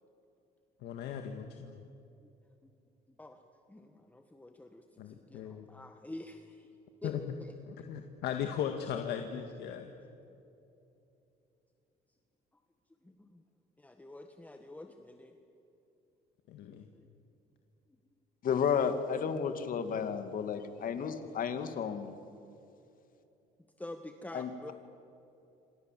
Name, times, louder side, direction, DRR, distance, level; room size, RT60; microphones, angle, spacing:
voice 1, 0.8-1.8 5.0-5.7 7.0-7.2 7.7-9.9 16.5-16.9 19.9-20.2, left 9 dB, 80° left, 5 dB, 1.9 m, -38 dB
voice 2, 3.7-6.7 7.0-7.1 7.4-7.5 13.0-13.4 13.8-15.4 16.9-17.1 23.8-24.7, left 1 dB, 10° left, 5 dB, 1.7 m, -48 dB
voice 3, 18.4-22.1 24.3-24.7, left 7 dB, 55° left, 8 dB, 2.4 m, -32 dB
28.0 x 26.0 x 7.7 m, 2.8 s
cardioid pair, 110°, 17 cm